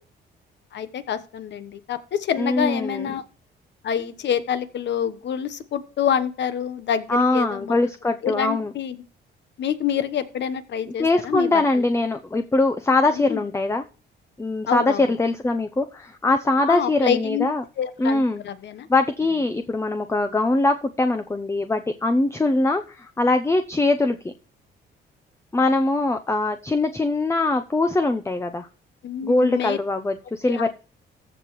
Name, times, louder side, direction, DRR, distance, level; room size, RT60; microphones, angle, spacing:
voice 1, 0.7-3.2 3.8-7.8 8.2-9.0 9.6-11.8 13.1-13.4 14.7-15.0 16.6-17.5 17.8-18.9 29.0-29.8 30.5-30.7, left 8 dB, 65° left, 12 dB, 1.1 m, -27 dB
voice 2, 2.4-3.1 7.1-8.7 10.9-13.8 14.4-17.6 18.0-18.4 18.9-24.3 25.5-28.7 29.2-30.7, left 2 dB, 15° left, 8 dB, 0.7 m, -22 dB
14.5 x 5.8 x 3.2 m, 0.37 s
cardioid pair, 90°, 20 cm